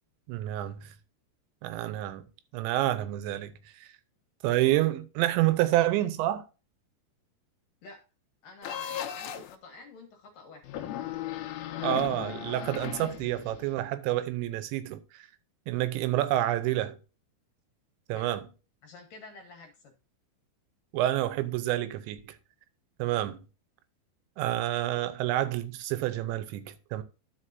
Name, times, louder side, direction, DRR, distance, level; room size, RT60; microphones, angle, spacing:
voice 1, 0.3-0.9 1.6-2.3 2.5-3.9 4.4-6.4 11.8-15.3 15.7-17.0 18.1-18.4 20.9-22.4 23.0-23.4 24.4-27.0, right 14 dB, 85° right, 3.0 m, -28 dB
voice 2, 8.4-10.6 18.1-18.4 18.8-19.9, left 3 dB, 65° left, 2.3 m, -49 dB
sound 1, 8.6-9.6 10.6-13.7, left 11 dB, 80° left, 2.2 m, -36 dB
12.5 x 5.3 x 2.6 m
omnidirectional pair, 5.2 m